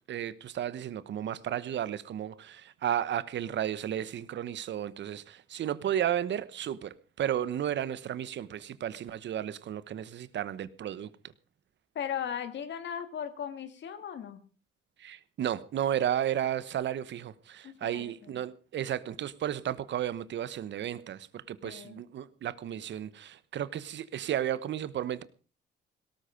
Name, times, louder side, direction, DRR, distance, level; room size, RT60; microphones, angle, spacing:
voice 1, 0.1-11.1 15.0-25.2, right 10 dB, 65° right, 1.1 m, -33 dB
voice 2, 12.0-14.4 17.6-18.4 21.6-22.0, left 8 dB, 65° left, 2.0 m, -37 dB
17.5 x 13.0 x 5.2 m
cardioid pair, 90°, 20 cm